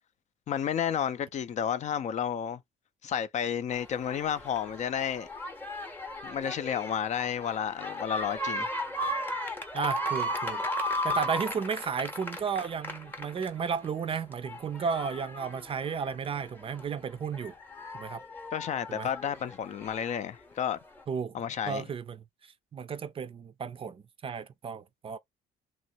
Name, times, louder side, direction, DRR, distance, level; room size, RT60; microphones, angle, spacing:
voice 1, 0.5-2.6 3.0-5.3 6.2-8.7 18.5-20.8 21.3-21.8, left 8 dB, 45° left, 0.4 m, -31 dB
sound 1, 3.7-13.9 14.3-16.8 17.3-20.2 21.0-21.1, left 1 dB, 10° left, 0.8 m, -35 dB
voice 2, 9.7-17.5 17.9-18.2 18.9-19.1 21.1-21.3 21.7-25.2, right 6 dB, 35° right, 0.4 m, -34 dB
3.0 x 2.5 x 2.8 m
cardioid pair, 110°, 17 cm